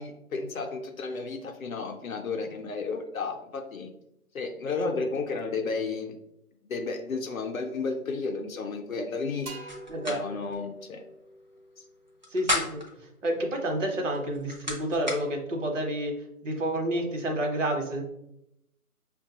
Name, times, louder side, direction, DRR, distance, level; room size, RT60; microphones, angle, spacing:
voice 1, 0.0-3.9 4.3-6.2 6.6-9.5 10.1-11.0 11.8-11.9, left 4 dB, 65° left, 4 dB, 0.6 m, -32 dB
sound 1, 9.5-13.1, right 1 dB, 85° right, 0.9 m, -47 dB
sound 2, 9.7-10.2 10.5-10.6 12.1-12.9 14.1-15.2, left 1 dB, 35° right, 0.4 m, -31 dB
voice 2, 9.9-10.2 12.3-12.8 13.2-16.2 16.4-18.0, right 1 dB, 55° right, 2 dB, 0.9 m, -29 dB
5.2 x 2.2 x 2.7 m, 0.82 s
figure-of-eight pair, 150°, 44 cm